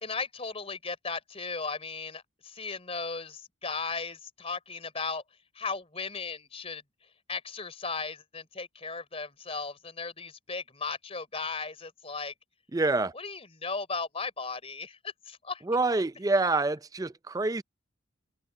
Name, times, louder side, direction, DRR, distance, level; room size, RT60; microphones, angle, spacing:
voice 1, 0.0-5.2 5.6-6.8 7.3-12.3 13.2-15.6, left 4 dB, 30° left, 3.5 m, -36 dB
voice 2, 12.7-13.1 15.6-17.6, right 3 dB, 15° right, 0.4 m, -26 dB
head